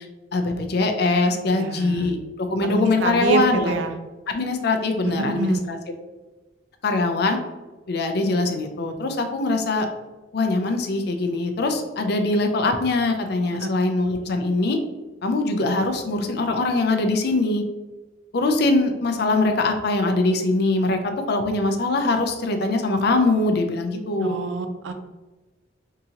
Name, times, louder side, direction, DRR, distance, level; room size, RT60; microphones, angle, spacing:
voice 1, 0.3-3.8 4.3-5.8 6.8-7.4 7.9-9.9 10.3-14.8 15.2-17.6 18.3-21.0 21.3-24.4, left 2 dB, 60° left, 6 dB, 0.4 m, -22 dB
voice 2, 1.5-2.1 2.6-3.9 5.2-5.6 13.6-13.7 24.2-24.9, right 3 dB, 90° right, 7 dB, 0.4 m, -26 dB
3.7 x 2.8 x 2.8 m, 1.2 s
head